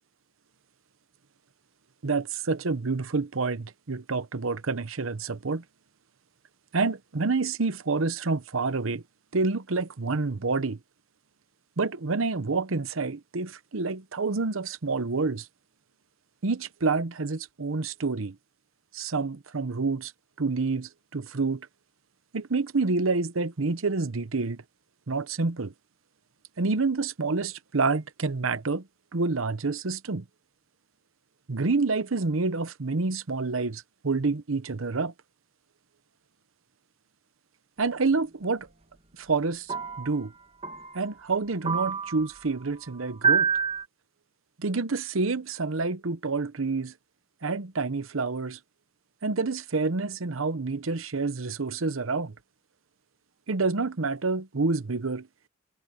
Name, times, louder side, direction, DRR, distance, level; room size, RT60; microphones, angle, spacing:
voice 1, 2.0-5.6 6.7-9.0 9.3-10.8 11.8-15.5 16.4-18.4 18.9-20.1 20.4-21.7 22.3-24.6 25.1-25.7 26.6-28.9 29.1-30.2 31.5-35.1 37.8-38.7 39.2-39.7 40.0-40.3 40.9-43.5 44.6-46.9 47.4-48.6 49.2-52.3 53.5-55.3, right 3 dB, 75° right, 0.9 m, -28 dB
sound 1, 38.4-38.5 39.7-40.2 40.6-41.0 41.6-42.3 43.2-43.8, right 6 dB, 30° right, 2.0 m, -27 dB
head